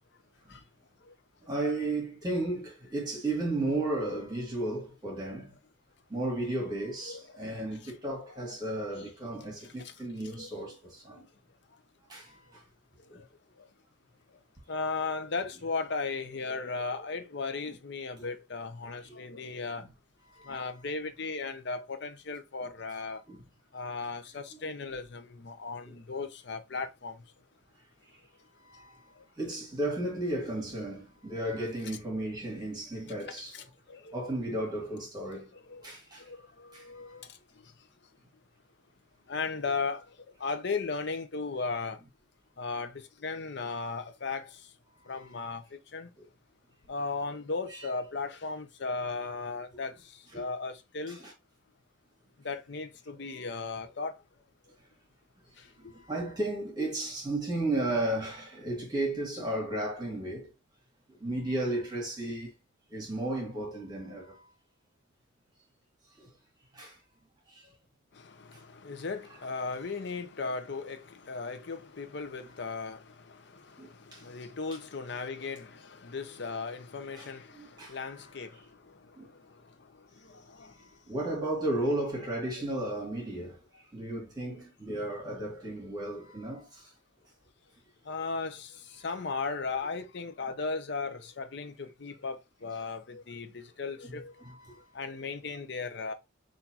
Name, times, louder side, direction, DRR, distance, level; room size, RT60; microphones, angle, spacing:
voice 1, 1.5-5.6 6.1-11.2 12.1-12.6 13.1-13.2 17.7-17.8 18.2-18.3 20.3-20.7 23.3-23.4 25.8-25.9 28.6-29.1 29.4-33.5 34.1-35.5 35.8-36.2 36.7-37.2 45.0-45.3 46.2-46.3 47.7-47.9 50.3-50.4 55.8-60.5 61.2-62.5 62.9-64.5 66.2-66.3 66.7-67.0 67.5-67.7 73.8-74.2 77.2-78.0 79.2-79.3 80.7-83.6 83.9-86.9 94.0-94.1 94.4-94.8, right 1 dB, 20° right, 1.6 m, -34 dB
voice 2, 7.1-7.5 7.8-7.9 8.3-8.6 10.2-10.5 11.1-11.3 13.1-13.2 14.7-19.9 20.4-23.2 23.7-27.2 33.3-34.2 35.7-35.8 36.2-37.3 39.3-40.1 40.4-42.0 42.6-44.6 45.1-46.1 46.9-49.9 50.3-51.2 52.4-54.2 68.1-78.9 79.3-79.4 80.2-80.7 88.1-94.3 94.9-96.1, left 4 dB, 60° left, 0.6 m, -36 dB
6.0 x 2.6 x 2.8 m
head